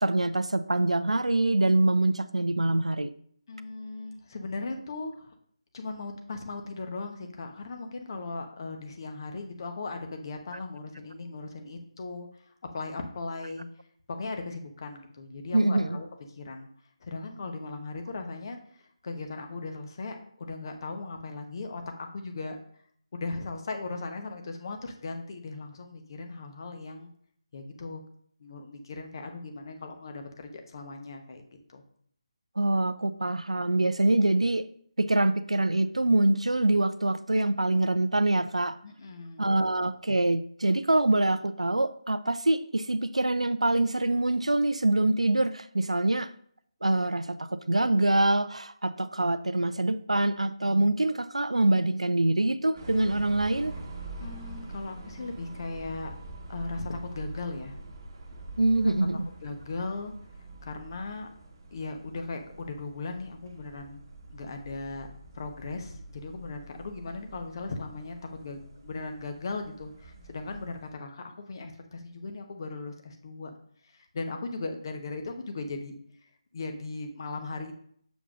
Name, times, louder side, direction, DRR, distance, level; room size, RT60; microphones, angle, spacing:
voice 1, 0.0-3.1 15.5-16.0 32.6-34.6 35.0-38.8 39.4-46.3 46.8-53.8 58.6-59.3, right 2 dB, 85° right, 13 dB, 0.4 m, -25 dB
voice 2, 3.5-5.3 5.7-13.6 14.1-16.7 17.0-22.6 23.1-27.1 27.5-28.0 28.4-31.4 31.7-31.8 38.8-39.5 54.2-56.1 56.5-57.8 58.8-58.9 59.4-60.1 60.6-61.3 61.7-64.0 64.3-65.1 65.3-73.5 73.8-75.9 76.5-77.7, left 3 dB, 45° left, 5 dB, 1.0 m, -38 dB
sound 1, 52.7-70.9, right 2 dB, 35° right, 1.1 m, -45 dB
7.1 x 7.0 x 2.5 m, 0.62 s
figure-of-eight pair, 155°, 3 cm